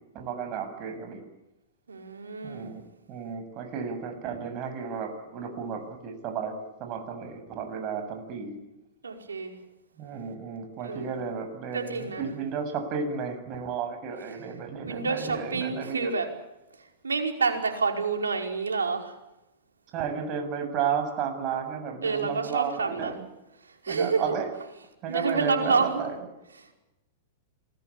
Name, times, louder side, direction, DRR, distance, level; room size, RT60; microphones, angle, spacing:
voice 1, 0.1-1.2 2.4-6.5 6.8-8.5 10.0-16.1 19.9-23.2 23.9-24.5 25.0-26.1, right 6 dB, 40° right, 7 dB, 7.4 m, -33 dB
voice 2, 1.9-2.7 9.0-9.6 10.8-11.1 11.7-12.2 14.9-16.3 17.0-19.2 22.0-23.1 23.8-24.2 25.1-26.0 26.6-26.7, right 4 dB, 85° right, 3 dB, 5.2 m, -28 dB
27.5 x 21.0 x 8.6 m, 0.95 s
hypercardioid pair, 105°, 0 cm